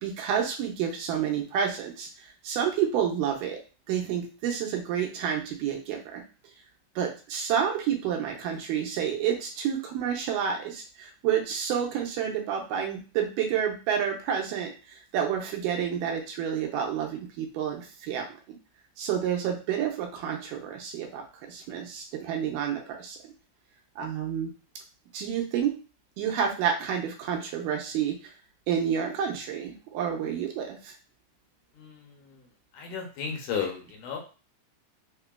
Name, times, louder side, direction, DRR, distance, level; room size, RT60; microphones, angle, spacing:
voice 1, 0.0-3.6 3.9-6.2 7.0-18.6 19.0-23.2 24.0-24.5 25.1-25.8 26.2-28.3 28.7-30.9, right 8 dB, 85° right, 2 dB, 2.2 m, -29 dB
voice 2, 31.8-32.4 32.7-34.2, left 7 dB, 75° left, 0 dB, 2.1 m, -34 dB
5.3 x 2.2 x 2.3 m, 0.34 s
omnidirectional pair, 3.7 m